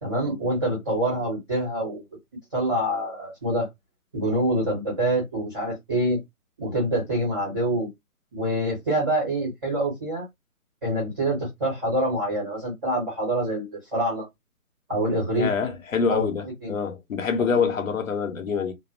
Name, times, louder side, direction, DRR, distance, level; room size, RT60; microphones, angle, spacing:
voice 1, 0.0-2.0 2.5-3.7 4.1-6.2 6.6-7.9 8.3-10.3 10.8-14.3 14.9-15.5 16.1-16.3 16.6-16.8 17.4-17.5, right 1 dB, 10° right, 0.6 m, -26 dB
voice 2, 15.3-18.7, left 6 dB, 65° left, 0.9 m, -25 dB
2.6 x 2.0 x 2.5 m
hypercardioid pair, 150°, 43 cm